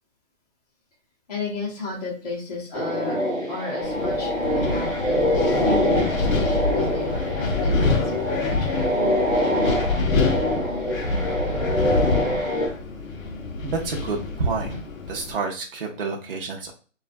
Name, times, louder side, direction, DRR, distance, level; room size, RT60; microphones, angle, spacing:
voice 1, 1.3-3.2 3.5-9.0, left 3 dB, 30° left, -4 dB, 0.7 m, -33 dB
sound 1, 2.7-12.7, left 1 dB, 10° left, 1.0 m, -24 dB
Wind, 3.8-15.3, left 3 dB, 85° left, 0.7 m, -27 dB
voice 2, 13.7-14.8 15.1-16.7, right 4 dB, 45° right, 0 dB, 0.6 m, -28 dB
2.5 x 2.3 x 2.4 m, 0.37 s
hypercardioid pair, 165°, 40 cm